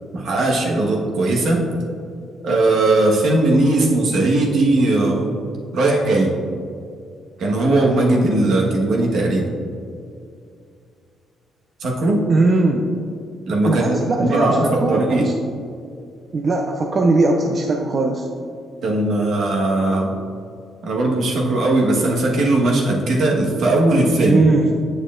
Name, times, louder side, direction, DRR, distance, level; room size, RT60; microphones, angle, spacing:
voice 1, 0.1-1.6 2.4-5.4 5.7-6.3 7.4-9.4 11.8-12.2 13.5-15.3 18.8-20.1 20.8-24.4, right 2 dB, 70° right, -1 dB, 1.2 m, -18 dB
voice 2, 12.3-12.9 13.6-15.3 16.3-18.3 24.2-24.7, right 2 dB, 45° right, 2 dB, 0.5 m, -19 dB
8.0 x 6.6 x 2.5 m, 2.3 s
cardioid pair, 90°, 0 cm